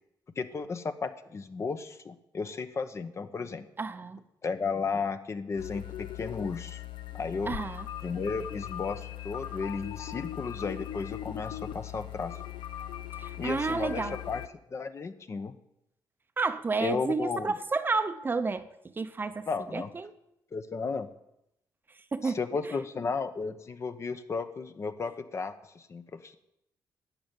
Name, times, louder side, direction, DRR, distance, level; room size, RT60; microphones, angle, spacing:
voice 1, 0.4-3.7 4.4-6.8 7.1-7.5 8.0-12.4 13.4-14.4 14.7-15.5 16.8-17.5 19.5-19.9 20.5-21.1 22.2-26.4, left 4 dB, 35° left, 10 dB, 0.9 m, -34 dB
voice 2, 3.8-4.2 7.5-7.9 13.2-14.2 16.4-18.7 19.0-20.1 22.1-22.4, right 4 dB, 25° right, 11 dB, 0.7 m, -31 dB
sound 1, 5.6-14.5, left 12 dB, 80° left, 0.7 m, -39 dB
12.0 x 7.9 x 8.9 m, 0.83 s
cardioid pair, 120°, 8 cm